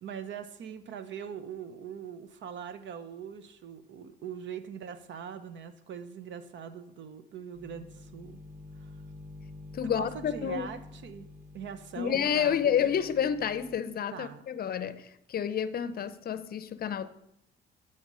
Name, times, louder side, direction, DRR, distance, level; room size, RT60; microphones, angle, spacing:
voice 1, 0.0-8.4 8.7-9.0 9.8-11.3 11.5-12.8 14.1-14.4, right 7 dB, 65° right, 0.7 m, -42 dB
sound 1, 7.5-13.8, left 2 dB, 10° right, 1.0 m, -48 dB
voice 2, 9.7-10.7 12.0-17.1, left 8 dB, 50° left, 0.6 m, -29 dB
9.4 x 4.3 x 6.1 m
cardioid pair, 90°, 20 cm